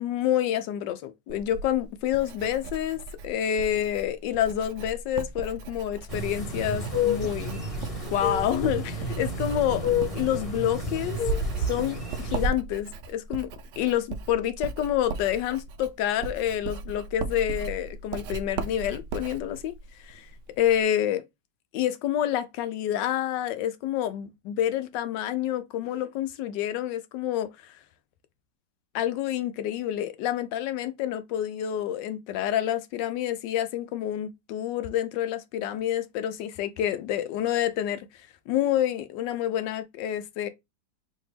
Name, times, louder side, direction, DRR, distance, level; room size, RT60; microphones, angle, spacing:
voice 1, 0.0-7.6 8.1-9.9 10.1-11.2 11.6-13.5 13.8-19.7 20.0-20.3 20.6-21.2 21.7-27.7 28.9-38.1 38.5-40.5, left 11 dB, 80° left, 1.2 m, -28 dB
Writing, 1.3-20.8, right 4 dB, 90° right, 0.6 m, -39 dB
sound 1, 6.1-12.5, left 2 dB, 20° left, 1.2 m, -29 dB
4.3 x 2.9 x 3.2 m
omnidirectional pair, 1.9 m